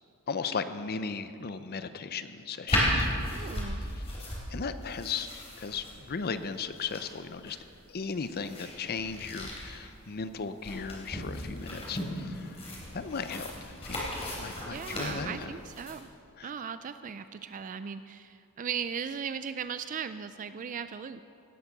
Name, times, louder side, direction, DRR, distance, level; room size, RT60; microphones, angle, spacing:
voice 1, 0.3-3.5 4.5-7.6 7.9-12.6 12.9-14.0 14.3-15.5 16.4-16.5, left 5 dB, 45° left, 11 dB, 0.6 m, -36 dB
sound 1, 2.7-15.9, left 1 dB, 30° left, 3.4 m, -35 dB
voice 2, 3.3-3.8 14.7-16.1 16.4-21.2, right 7 dB, 35° right, 11 dB, 0.3 m, -37 dB
17.0 x 8.3 x 6.0 m, 2.6 s
head